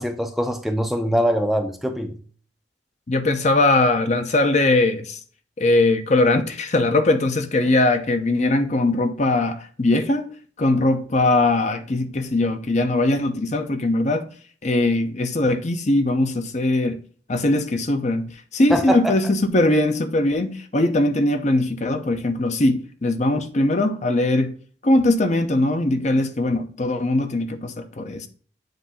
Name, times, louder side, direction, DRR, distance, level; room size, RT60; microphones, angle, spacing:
voice 1, 0.0-2.2 18.7-19.2, equal, ahead, 0.5 m, -23 dB
voice 2, 3.1-5.2 5.6-10.3 10.6-14.3 14.6-17.0 17.3-24.6 24.8-28.3, left 2 dB, 40° left, 0.7 m, -20 dB
7.8 x 2.7 x 5.5 m
head